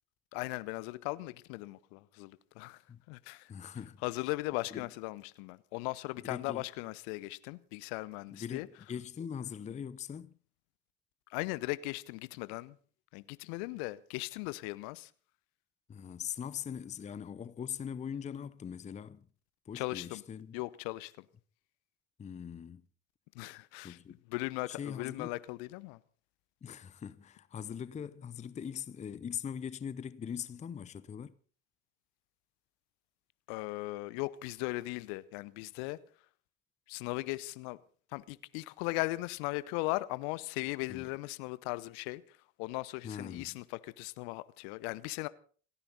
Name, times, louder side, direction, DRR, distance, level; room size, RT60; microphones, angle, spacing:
voice 1, 0.3-2.8 3.1-3.5 4.0-8.7 11.3-12.8 13.1-15.1 19.7-20.2 20.5-21.2 23.3-24.0 24.3-26.0 33.5-36.0 36.9-37.8 38.1-42.2 42.6-45.3, left 21 dB, 55° left, 0.9 m, -38 dB
voice 2, 3.5-4.0 4.7-4.9 6.2-6.7 8.3-8.6 8.9-10.3 15.9-19.3 19.7-20.6 22.2-22.8 23.8-24.2 24.7-25.3 26.6-31.3 40.9-41.1 43.0-43.6, left 8 dB, 15° left, 0.7 m, -41 dB
28.5 x 10.0 x 4.1 m
figure-of-eight pair, 70°, 41 cm